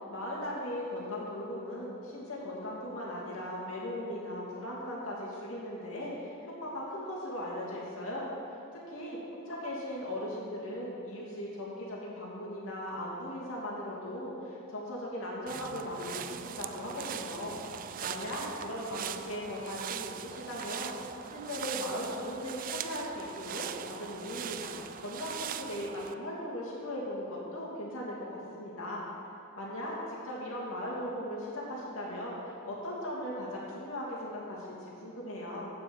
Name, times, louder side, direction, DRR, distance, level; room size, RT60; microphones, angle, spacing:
voice 1, 0.1-8.3 8.7-17.6 18.0-21.0 21.2-24.7 25.0-29.0 29.6-35.7, left 1 dB, 70° left, -5 dB, 2.7 m, -38 dB
sound 1, 15.5-26.1, right 9 dB, 40° right, 0.3 m, -41 dB
8.9 x 7.5 x 7.2 m, 2.7 s
head